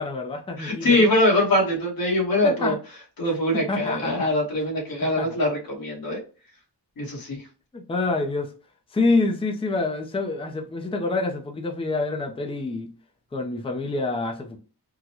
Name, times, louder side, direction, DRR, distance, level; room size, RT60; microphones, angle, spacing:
voice 1, 0.0-1.1 2.4-2.7 3.7-4.3 5.2-5.3 7.7-8.5 8.9-12.9 13.3-14.6, left 3 dB, 15° left, 0.4 m, -27 dB
voice 2, 0.6-2.8 3.2-6.2 7.0-7.5, left 1 dB, 60° left, 1.4 m, -23 dB
3.8 x 2.1 x 2.9 m
wide cardioid pair, 170°, 40 cm